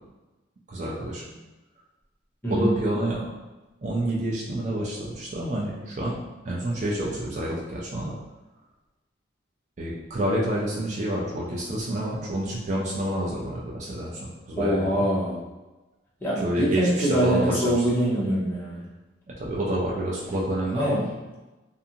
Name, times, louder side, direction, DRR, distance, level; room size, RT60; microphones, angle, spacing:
voice 1, 0.7-1.2 2.5-3.3 3.8-6.2 6.4-8.1 9.8-15.0 16.4-17.7 19.3-21.1, right 1 dB, 35° right, -4 dB, 0.4 m, -28 dB
voice 2, 14.6-15.4 16.2-18.8 20.7-21.0, equal, 10° left, -7 dB, 0.6 m, -24 dB
2.5 x 2.4 x 2.8 m, 1.1 s
head